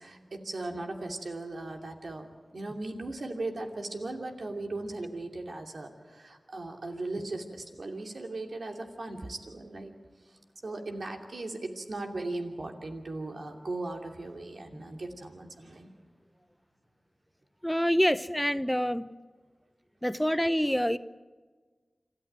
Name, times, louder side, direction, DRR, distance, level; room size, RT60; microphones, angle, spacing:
voice 1, 0.0-2.3 2.5-9.9 10.2-10.4 10.6-15.9, right 2 dB, 75° right, 2.7 m, -38 dB
voice 2, 17.6-19.1 20.0-21.0, equal, 5° left, 0.7 m, -26 dB
27.0 x 13.5 x 9.3 m
cardioid pair, 45°, 0 cm